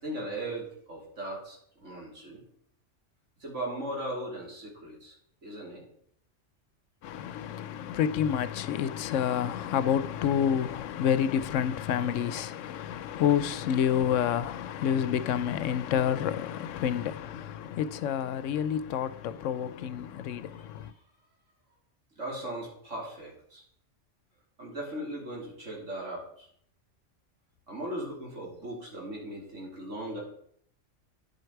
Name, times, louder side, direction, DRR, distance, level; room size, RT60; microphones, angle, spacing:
voice 1, 0.0-2.4 3.4-5.2 5.4-5.8 20.6-20.9 22.2-23.6 24.6-26.5 27.7-30.2, right 1 dB, 70° right, 3.6 m, -38 dB
voice 2, 7.0-20.9, left 9 dB, 80° left, 0.9 m, -29 dB
10.5 x 7.8 x 4.6 m
omnidirectional pair, 1.3 m